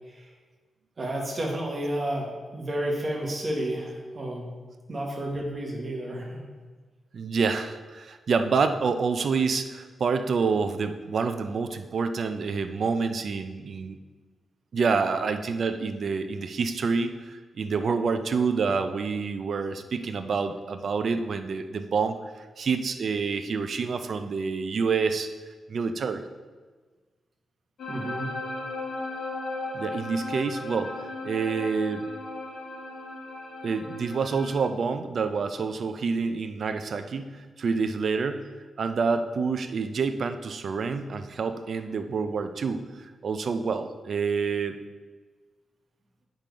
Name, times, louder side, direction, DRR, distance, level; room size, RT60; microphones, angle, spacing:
voice 1, 1.0-4.5 4.9-6.5 27.9-28.3, right 1 dB, 30° right, -1 dB, 1.4 m, -31 dB
voice 2, 7.1-14.0 14.7-25.3 25.7-26.2 29.7-32.1 33.6-38.5 38.8-44.8, right 5 dB, 50° right, 9 dB, 0.4 m, -28 dB
sound 1, 27.8-34.6, left 2 dB, 80° left, 2.0 m, -36 dB
7.4 x 5.3 x 4.7 m, 1.4 s
wide cardioid pair, 180°, 0 cm